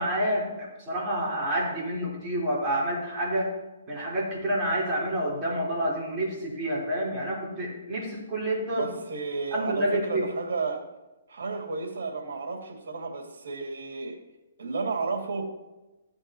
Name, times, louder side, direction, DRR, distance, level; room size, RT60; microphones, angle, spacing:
voice 1, 0.0-3.5 3.9-8.9 9.5-10.2, right 1 dB, 20° right, -7 dB, 4.2 m, -28 dB
voice 2, 8.7-10.8 11.3-14.2 14.6-15.5, right 4 dB, 75° right, 1 dB, 2.5 m, -32 dB
15.0 x 8.8 x 3.1 m, 1.0 s
hypercardioid pair, 160°, 0 cm